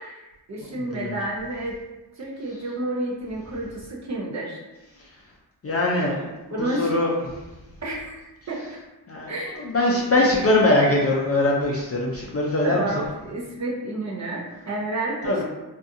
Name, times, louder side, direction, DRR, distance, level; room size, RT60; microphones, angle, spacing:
voice 1, 0.0-1.8 2.2-4.6 6.5-7.0 7.8-8.2 8.5-8.7 9.3-9.6 12.6-15.4, right 2 dB, 40° right, -3 dB, 0.6 m, -30 dB
voice 2, 0.8-1.1 5.0-5.2 5.6-7.1 9.1-12.8 15.2-15.4, left 2 dB, 35° left, -3 dB, 0.5 m, -22 dB
2.6 x 2.4 x 2.5 m, 1.1 s
cardioid pair, 55°, 41 cm